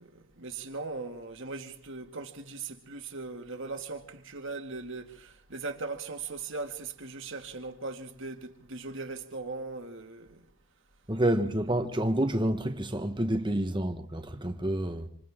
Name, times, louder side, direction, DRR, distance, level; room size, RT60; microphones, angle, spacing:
voice 1, 0.0-10.5, right 3 dB, 55° right, 2.2 m, -39 dB
voice 2, 11.1-15.1, right 1 dB, 20° right, 1.4 m, -28 dB
27.5 x 27.5 x 3.8 m
head